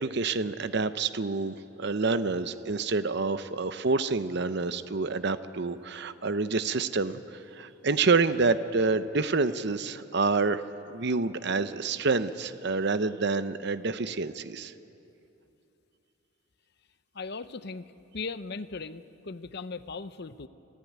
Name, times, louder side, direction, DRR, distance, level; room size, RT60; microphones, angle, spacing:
voice 1, 0.0-10.6 10.9-14.7, right 4 dB, 55° right, 12 dB, 0.8 m, -28 dB
voice 2, 17.1-20.5, left 4 dB, 55° left, 12 dB, 0.7 m, -38 dB
27.5 x 15.0 x 9.4 m, 2.9 s
head